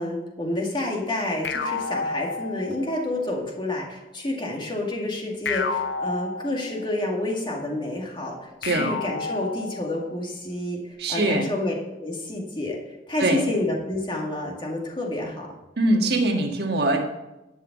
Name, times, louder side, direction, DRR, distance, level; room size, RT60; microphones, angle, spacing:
voice 1, 0.0-11.7 12.0-15.5, left 1 dB, 25° left, -1 dB, 2.1 m, -29 dB
sound 1, 1.4-3.1 5.5-7.0 8.6-10.1, left 4 dB, 65° left, 0.7 m, -30 dB
voice 2, 8.6-8.9 11.0-11.4 13.2-13.5 15.8-17.0, right 2 dB, 60° right, 2 dB, 1.6 m, -22 dB
12.0 x 5.6 x 7.3 m, 0.99 s
head